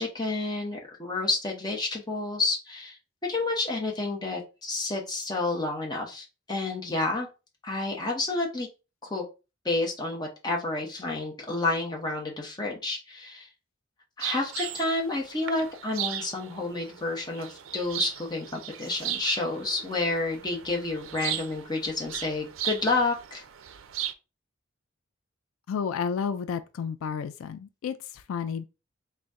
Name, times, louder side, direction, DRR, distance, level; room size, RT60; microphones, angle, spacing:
voice 1, 0.0-3.0 3.2-7.3 7.6-8.7 9.0-9.2 9.6-13.5 14.2-23.4, left 2 dB, 20° left, 0.8 m, -30 dB
sound 1, 14.2-24.1, right 11 dB, 75° right, 0.4 m, -37 dB
voice 2, 25.7-28.6, left 6 dB, 85° left, 0.3 m, -31 dB
4.0 x 2.1 x 3.5 m
head